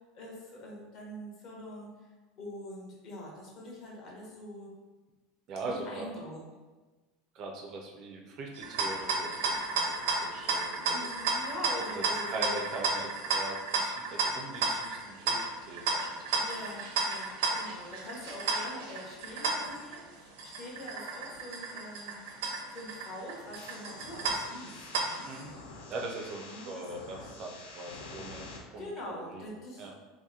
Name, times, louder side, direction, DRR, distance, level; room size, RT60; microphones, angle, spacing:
voice 1, 0.1-1.9 2.4-4.7 5.6-6.5 10.9-12.6 16.4-25.3 26.4-26.7 28.8-29.9, left 1 dB, 35° left, -3 dB, 0.8 m, -44 dB
voice 2, 5.5-6.1 7.3-11.1 11.7-16.9 25.2-25.5 25.9-28.5 28.7-29.4 29.8-29.9, right 2 dB, 35° right, 0 dB, 0.4 m, -41 dB
sound 1, 8.5-25.4, right 3 dB, 85° right, 0.6 m, -33 dB
sound 2, 23.5-28.6, left 3 dB, 80° left, 0.5 m, -47 dB
2.8 x 2.5 x 3.6 m, 1.3 s
supercardioid pair, 175°, 0 cm